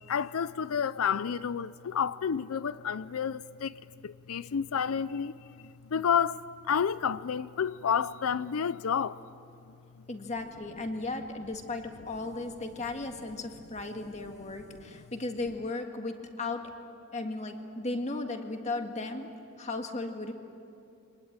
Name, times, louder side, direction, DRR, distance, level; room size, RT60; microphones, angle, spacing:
voice 1, 0.0-3.7 4.0-5.3 5.6-9.2, left 7 dB, 80° left, 0.5 m, -30 dB
voice 2, 10.1-16.7 17.1-19.3 19.6-20.3, left 2 dB, 35° left, 1.8 m, -36 dB
25.0 x 19.5 x 8.9 m
head